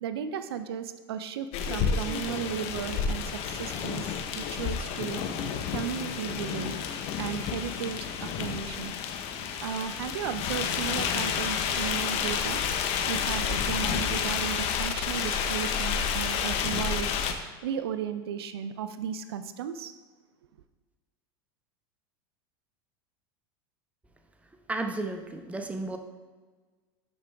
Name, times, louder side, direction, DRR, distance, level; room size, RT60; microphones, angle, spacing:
voice 1, 0.0-5.2 5.7-6.8 7.2-8.9 9.6-12.6 13.1-17.1 17.6-19.9, right 8 dB, 85° right, 10 dB, 0.5 m, -35 dB
sound 1, 1.5-17.3, left 7 dB, 50° left, 0.9 m, -30 dB
voice 2, 24.7-26.0, right 2 dB, 10° right, 5 dB, 0.9 m, -33 dB
12.5 x 5.2 x 3.4 m, 1.4 s
hypercardioid pair, 105°, 13 cm